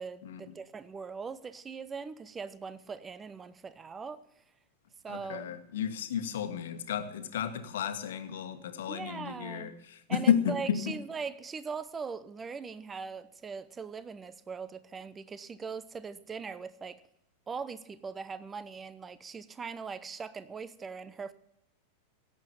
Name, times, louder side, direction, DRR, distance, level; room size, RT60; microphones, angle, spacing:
voice 1, 0.0-4.2 5.0-5.6 8.9-9.7 10.1-17.0 17.5-21.3, right 5 dB, 20° right, 0.8 m, -40 dB
voice 2, 5.1-11.0, left 8 dB, 60° left, 1.5 m, -32 dB
17.0 x 7.8 x 7.1 m
figure-of-eight pair, 90°, 0 cm